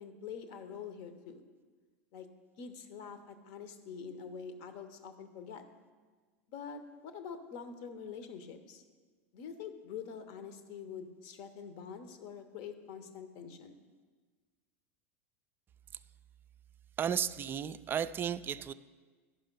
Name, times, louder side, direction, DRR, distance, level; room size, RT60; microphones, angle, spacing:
voice 1, 0.0-1.4 2.1-2.3 2.6-5.6 6.5-8.8 9.3-13.7, left 6 dB, 60° left, 9 dB, 0.9 m, -45 dB
voice 2, 17.0-18.7, right 8 dB, 30° right, 14 dB, 0.3 m, -34 dB
11.5 x 5.5 x 5.3 m, 1.4 s
hypercardioid pair, 95°, 8 cm